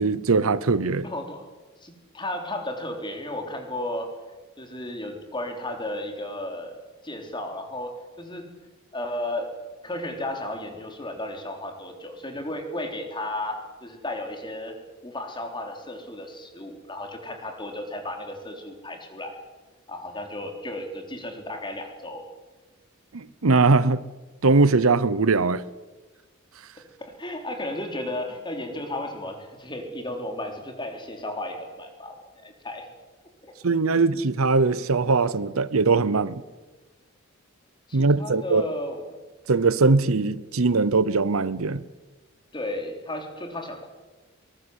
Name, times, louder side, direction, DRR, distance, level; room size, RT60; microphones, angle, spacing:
voice 1, 0.0-1.0 23.1-24.0 24.4-25.6 33.6-36.4 37.9-38.6 39.5-41.8, right 3 dB, 80° right, 0.8 m, -21 dB
voice 2, 1.0-1.4 1.8-4.1 4.6-6.8 7.0-8.5 8.9-9.5 9.8-14.7 15.0-19.4 19.9-22.2 27.0-32.9 33.4-33.5 37.9-39.2 42.5-43.9, left 1 dB, 20° left, 3.8 m, -34 dB
22.5 x 20.0 x 8.1 m
head